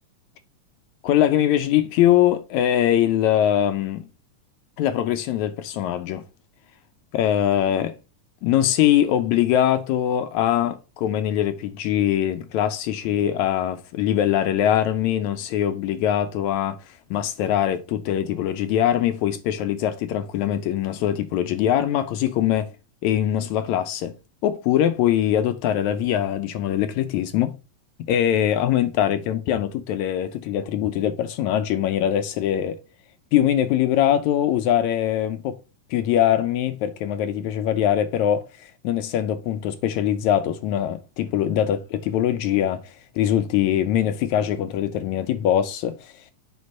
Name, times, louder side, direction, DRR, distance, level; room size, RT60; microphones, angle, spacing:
voice 1, 1.0-4.1 4.8-6.2 7.1-7.9 8.4-22.7 23.0-24.1 24.4-27.6 28.1-32.8 33.3-35.6 35.9-46.2, left 11 dB, 80° left, 1.7 m, -22 dB
8.1 x 5.2 x 4.1 m
omnidirectional pair, 3.8 m